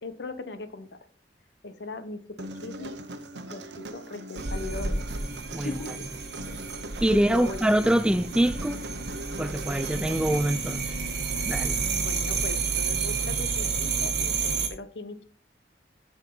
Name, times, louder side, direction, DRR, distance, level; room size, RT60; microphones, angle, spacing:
voice 1, 0.0-1.0 1.6-3.0 3.5-5.2 5.6-6.1 6.4-6.6 7.1-7.7 11.8-15.2, left 2 dB, 80° left, 1.0 m, -39 dB
Human voice, 2.4-10.4, right 1 dB, 80° right, 0.9 m, -40 dB
sound 1, 4.4-14.7, right 4 dB, 65° right, 1.4 m, -30 dB
voice 2, 7.0-8.8 9.4-10.9 11.5-11.8, right 1 dB, 5° right, 0.3 m, -24 dB
8.4 x 6.4 x 3.9 m
head